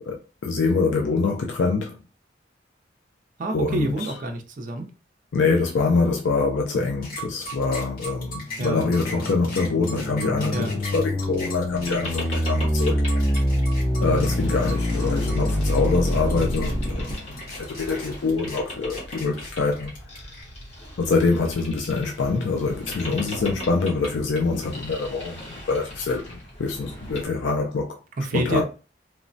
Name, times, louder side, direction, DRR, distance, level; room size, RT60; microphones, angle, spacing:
voice 1, 0.1-2.0 3.5-3.9 5.3-13.0 14.0-19.9 21.0-28.0 28.3-28.6, left 4 dB, 80° left, 0.4 m, -25 dB
voice 2, 3.4-4.9 8.6-8.9 10.5-10.8 28.2-28.6, right 2 dB, 45° right, 0.4 m, -28 dB
sound 1, 7.0-20.4, left 1 dB, 50° left, 1.3 m, -38 dB
sound 2, 8.4-17.1, equal, 15° left, 0.6 m, -25 dB
Boat Water vehicle, 11.7-27.3, equal, 35° left, 0.9 m, -39 dB
3.1 x 2.0 x 2.6 m
head